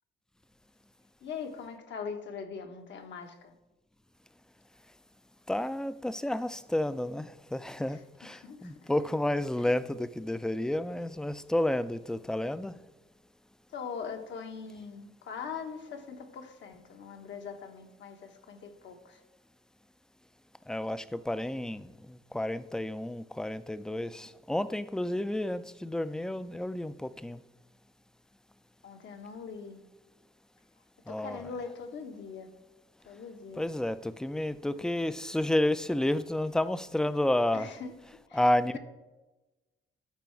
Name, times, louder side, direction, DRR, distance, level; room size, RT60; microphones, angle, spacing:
voice 1, 1.2-3.5 7.9-8.9 9.6-9.8 13.7-19.2 28.8-29.8 31.1-32.5 33.0-33.7 34.7-35.1 37.5-37.9 38.3-38.8, left 6 dB, 65° left, 1.3 m, -42 dB
voice 2, 5.5-12.7 20.7-27.4 31.1-31.5 33.6-37.7 38.3-38.8, left 1 dB, 5° left, 0.4 m, -31 dB
13.5 x 4.7 x 4.6 m
cardioid pair, 90°, 20 cm